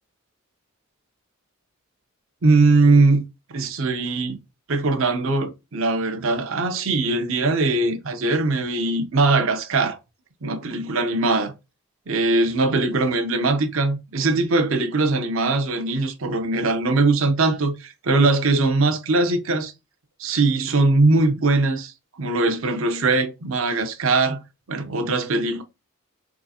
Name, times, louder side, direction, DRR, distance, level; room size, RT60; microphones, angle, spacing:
voice 1, 2.4-3.2 3.5-4.4 4.7-10.0 10.4-11.5 12.1-19.7 20.2-21.9 22.2-24.4 24.7-25.6, right 3 dB, 70° right, 0.7 m, -21 dB
3.6 x 3.1 x 2.8 m
head